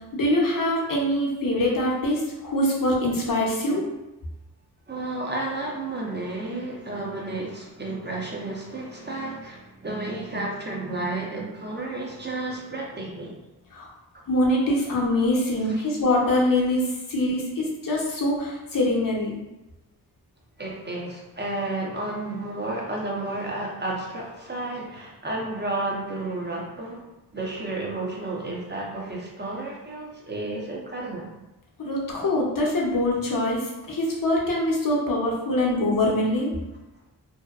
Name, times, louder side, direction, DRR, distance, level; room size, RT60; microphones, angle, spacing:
voice 1, 0.1-3.8 13.7-13.9 14.3-19.3 31.8-36.5, left 1 dB, 50° left, -3 dB, 0.8 m, -24 dB
voice 2, 4.9-13.4 15.6-15.8 20.6-27.0 27.3-31.3, right 2 dB, 25° right, -2 dB, 0.7 m, -32 dB
2.7 x 2.2 x 2.3 m, 1.0 s
cardioid pair, 45°, 42 cm